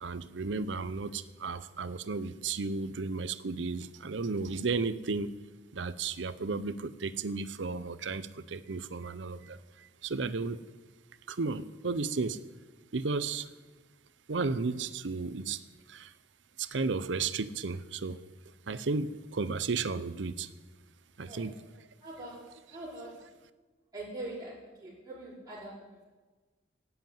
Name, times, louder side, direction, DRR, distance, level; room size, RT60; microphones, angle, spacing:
voice 1, 0.0-5.3 5.7-10.6 11.3-12.4 12.9-13.5 14.3-15.6 15.9-16.1 16.6-18.2 18.7-20.5 21.2-21.6, right 4 dB, 80° right, 14 dB, 0.7 m, -34 dB
voice 2, 22.0-23.2 23.9-26.0, right 1 dB, 20° right, -10 dB, 4.7 m, -43 dB
16.0 x 8.0 x 9.1 m, 1.3 s
head